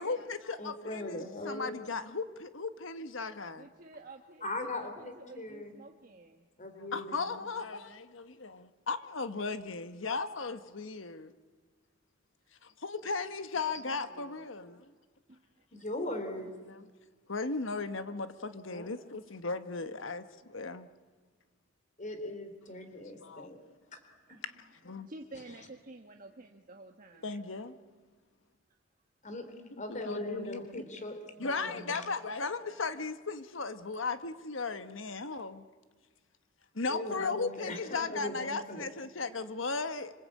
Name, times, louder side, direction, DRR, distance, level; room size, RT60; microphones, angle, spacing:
voice 1, 0.0-3.7 6.9-11.3 12.6-14.9 16.6-16.9 17.3-20.9 23.2-23.5 24.4-24.5 24.8-25.1 27.2-27.8 29.7-30.9 31.4-35.6 36.7-40.1, left 4 dB, 70° left, 1.4 m, -36 dB
voice 2, 0.6-1.8 4.4-5.8 6.6-7.4 15.7-16.6 18.7-18.9 22.0-23.6 23.9-24.0 24.3-24.4 29.2-29.5 29.8-32.1 36.9-38.9, left 1 dB, 40° left, 3.7 m, -40 dB
voice 3, 3.5-6.5 13.6-14.5 14.7-15.0 15.3-15.7 18.9-19.1 20.4-20.9 24.3-24.4 24.9-27.3, right 2 dB, 45° right, 1.5 m, -52 dB
26.0 x 26.0 x 8.6 m
head